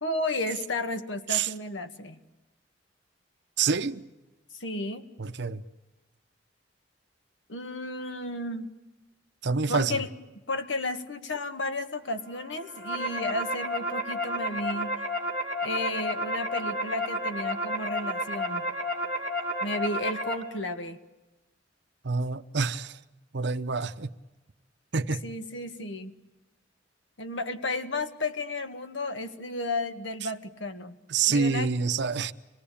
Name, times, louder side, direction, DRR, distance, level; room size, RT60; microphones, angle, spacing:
voice 1, 0.0-2.2 4.6-5.0 7.5-8.7 9.7-10.1 10.5-14.9 15.6-18.6 19.6-21.0 25.2-26.2 27.2-30.9 31.3-31.7, left 2 dB, 80° left, 1.8 m, -33 dB
voice 2, 3.6-4.0 5.2-5.6 9.4-10.0 22.0-23.0 23.3-24.1 24.9-25.2 31.1-32.3, right 5 dB, 65° right, 0.8 m, -27 dB
sound 1, 12.5-20.3, equal, 60° left, 4.0 m, -31 dB
26.5 x 19.0 x 8.6 m
head